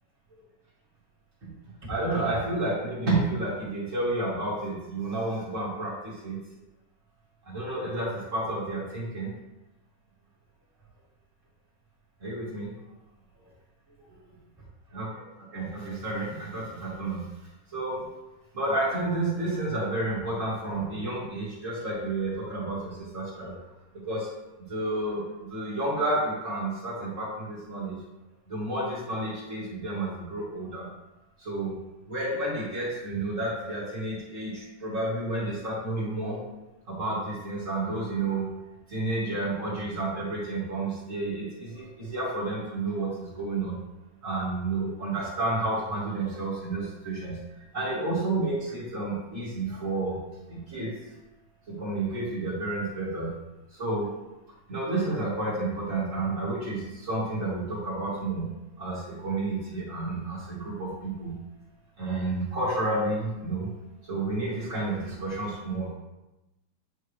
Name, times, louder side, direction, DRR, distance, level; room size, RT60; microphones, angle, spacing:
voice 1, 1.4-6.4 7.4-9.3 12.2-12.7 14.9-15.1 15.5-17.3 17.7-18.1 18.5-23.6 24.1-24.3 24.7-28.0 28.5-30.9 31.4-31.8 32.1-36.4 36.8-38.5 38.9-43.8 44.2-47.4 47.7-50.2 50.5-51.0 51.7-53.3 53.7-54.1 54.7-58.5 58.8-61.3 62.0-63.7 64.0-65.9, right 2 dB, 25° right, -8 dB, 2.3 m, -30 dB
9.7 x 4.4 x 3.3 m, 0.99 s
omnidirectional pair, 3.9 m